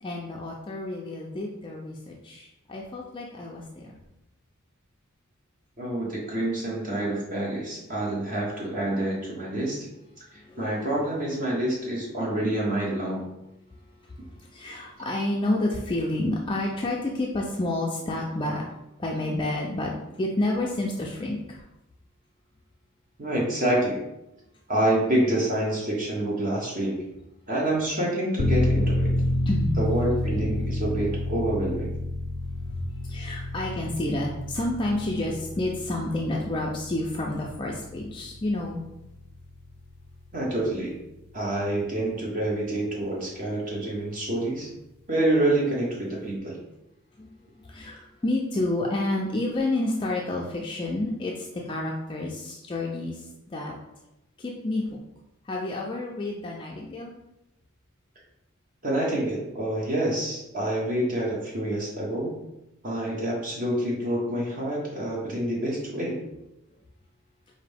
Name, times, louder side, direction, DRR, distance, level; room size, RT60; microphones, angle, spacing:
voice 1, 0.0-4.0 10.3-10.7 13.7-18.6 19.0-19.9 20.2-21.6 29.4-29.8 32.7-32.8 33.1-38.8 47.2-47.3 47.7-53.7 54.4-55.0 55.5-57.1, left 1 dB, 20° left, -2 dB, 0.3 m, -29 dB
voice 2, 5.8-9.9 10.6-13.2 23.2-24.0 24.7-27.0 27.5-29.1 29.8-31.9 40.3-40.9 41.3-44.7 45.1-46.6 58.8-62.3 62.8-66.2, right 1 dB, 40° right, -3 dB, 0.9 m, -27 dB
sound 1, 28.4-40.9 41.3-41.4, left 1 dB, 85° left, 0.5 m, -30 dB
4.8 x 2.6 x 3.4 m, 0.90 s
head